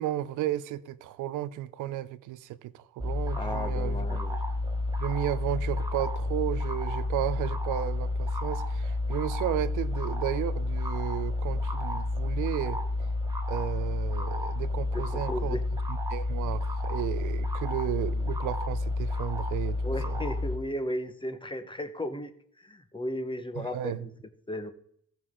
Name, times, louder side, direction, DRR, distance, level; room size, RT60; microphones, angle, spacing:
voice 1, 0.0-4.1 5.0-12.8 13.5-15.6 15.9-20.2 23.6-24.1, right 13 dB, 90° right, 0.7 m, -33 dB
sound 1, 3.0-20.6, left 2 dB, 15° right, 1.5 m, -30 dB
voice 2, 3.4-4.4 14.9-15.6 19.8-24.1 24.5-24.7, left 1 dB, 15° left, 1.0 m, -35 dB
17.0 x 5.7 x 3.7 m
cardioid pair, 90°, 30 cm